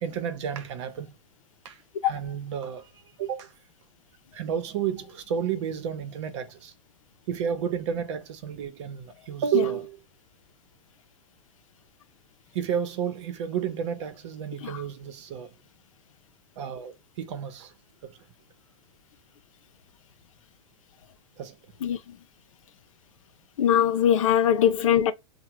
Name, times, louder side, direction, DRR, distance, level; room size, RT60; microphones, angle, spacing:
voice 1, 0.0-1.1 1.6-2.9 3.2-3.5 4.3-6.7 7.3-10.0 12.5-15.5 16.6-17.7 18.0-18.2 21.4-21.6, right 8 dB, 60° right, 0.8 m, -31 dB
voice 2, 21.8-22.2 23.6-25.1, left 9 dB, 85° left, 0.6 m, -22 dB
3.4 x 2.2 x 3.0 m
hypercardioid pair, 135°, 17 cm